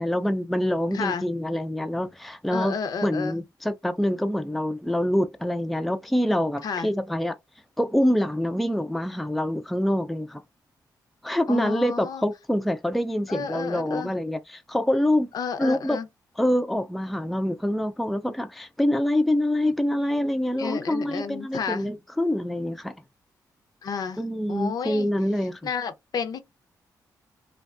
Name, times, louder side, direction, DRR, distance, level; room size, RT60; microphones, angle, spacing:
voice 1, 0.0-2.8 3.0-7.4 7.8-10.4 11.2-15.3 15.6-16.0 16.4-23.0 24.2-25.6, left 1 dB, ahead, 0.3 m, -25 dB
voice 2, 0.9-1.3 2.5-3.3 6.6-6.9 11.5-12.2 13.3-14.1 15.3-16.1 20.6-21.9 23.8-24.2 24.5-25.1 25.6-26.4, left 6 dB, 60° left, 0.5 m, -31 dB
2.5 x 2.2 x 2.3 m
cardioid pair, 85°, 7 cm